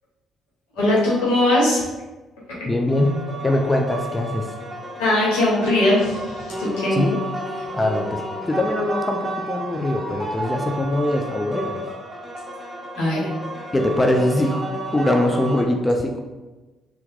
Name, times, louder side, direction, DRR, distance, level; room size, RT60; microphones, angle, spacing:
voice 1, 0.7-1.8 5.0-7.0 12.9-13.3, left 1 dB, 80° left, -6 dB, 1.2 m, -20 dB
voice 2, 2.6-4.5 6.9-7.2 7.7-11.9 13.7-14.7 14.9-16.2, left 1 dB, 20° left, 2 dB, 0.4 m, -22 dB
sound 1, 2.9-15.6, right 1 dB, 15° right, 0.8 m, -32 dB
2.8 x 2.4 x 3.5 m, 1.2 s
hypercardioid pair, 50°, 0 cm